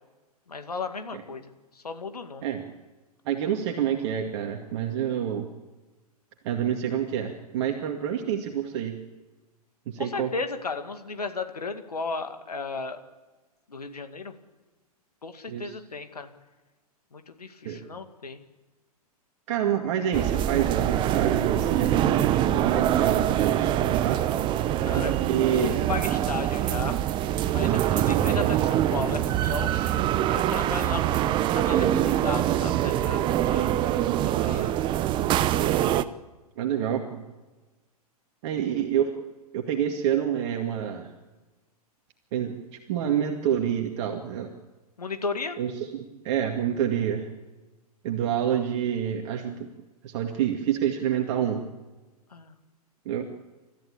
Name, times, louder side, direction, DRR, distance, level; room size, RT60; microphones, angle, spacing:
voice 1, 0.5-1.5 1.8-2.4 10.0-13.0 13.7-14.3 15.2-16.3 17.1-18.4 24.8-25.1 25.5-27.0 27.5-29.9 30.3-33.7 34.2-34.8 45.0-45.6 52.3-52.5, left 4 dB, 75° left, 7 dB, 2.2 m, -35 dB
voice 2, 3.3-5.5 6.4-8.9 9.9-10.3 15.5-15.8 17.6-17.8 19.5-24.2 25.0-25.8 27.6-27.9 36.6-37.3 38.4-39.1 39.5-41.1 42.3-42.5 42.9-44.5 45.6-47.3 48.0-49.7 50.0-51.6 53.1-53.3, right 9 dB, 45° right, 3 dB, 2.1 m, -27 dB
sound 1, 20.1-36.0, right 12 dB, 25° right, 0.8 m, -24 dB
30.0 x 14.0 x 8.7 m, 1.2 s
figure-of-eight pair, 110°, 20 cm